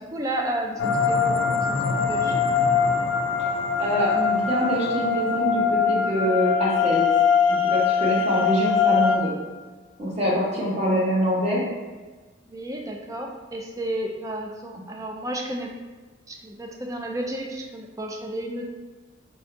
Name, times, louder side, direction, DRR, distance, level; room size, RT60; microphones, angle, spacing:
voice 1, 0.1-2.4 12.5-15.7 16.3-18.6, right 1 dB, 15° right, 1 dB, 0.4 m, -32 dB
sound 1, 0.8-9.2, left 6 dB, 70° left, 0.4 m, -22 dB
voice 2, 3.8-7.0 7.5-9.3 10.0-11.6, equal, 30° right, -5 dB, 1.0 m, -24 dB
4.3 x 3.6 x 2.6 m, 1.3 s
head